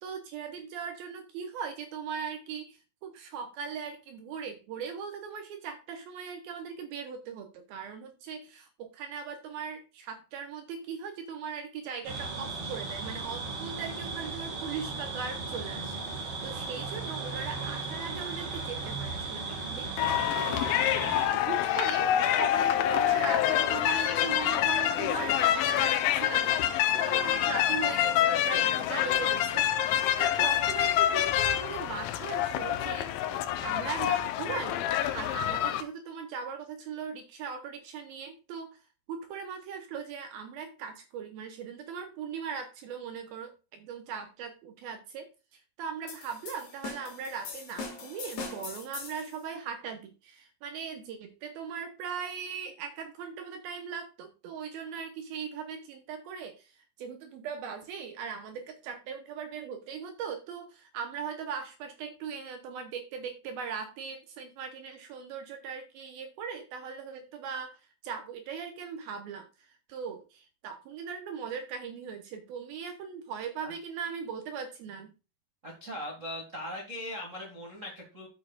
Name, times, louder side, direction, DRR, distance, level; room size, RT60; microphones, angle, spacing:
voice 1, 0.0-20.1 20.4-38.8 39.1-56.7 57.0-67.7 68.0-75.1, right 6 dB, 75° right, 6 dB, 2.4 m, -39 dB
sound 1, 12.0-21.3, right 3 dB, 40° right, 2.4 m, -36 dB
sound 2, 20.0-35.8, left 11 dB, 80° left, 2.2 m, -27 dB
sound 3, 46.1-49.4, left 4 dB, 50° left, 2.4 m, -41 dB
voice 2, 75.6-78.3, left 1 dB, 55° right, -2 dB, 0.8 m, -39 dB
12.5 x 6.4 x 2.4 m, 0.30 s
omnidirectional pair, 4.9 m